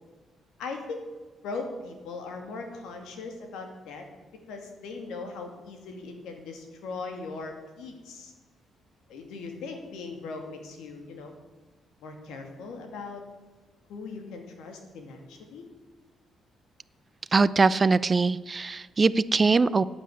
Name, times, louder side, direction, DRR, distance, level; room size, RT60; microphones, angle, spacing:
voice 1, 0.6-1.0 1.4-4.0 4.3-8.3 9.1-11.3 12.0-13.2 13.9-15.6, left 4 dB, 85° left, 4 dB, 2.5 m, -39 dB
voice 2, 17.3-19.8, right 4 dB, 30° right, 17 dB, 0.5 m, -22 dB
9.8 x 9.2 x 9.7 m, 1.3 s
cardioid pair, 90°, 0 cm